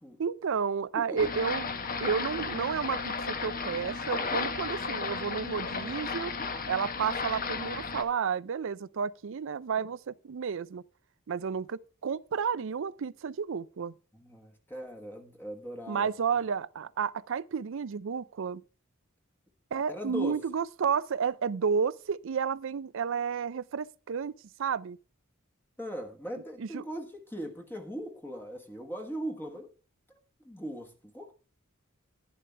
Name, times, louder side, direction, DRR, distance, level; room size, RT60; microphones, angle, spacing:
voice 1, 0.2-1.7 2.0-6.3 6.7-10.8 11.3-13.9 15.9-18.6 19.7-24.3 24.6-25.0 26.6-26.8, right 6 dB, 65° right, 0.5 m, -31 dB
sound 1, 1.2-8.0, left 4 dB, 45° left, 1.1 m, -34 dB
voice 2, 14.1-16.1 19.9-20.4 25.8-29.7 30.1-30.2 30.4-31.3, equal, 10° left, 1.3 m, -39 dB
11.0 x 10.5 x 3.3 m
head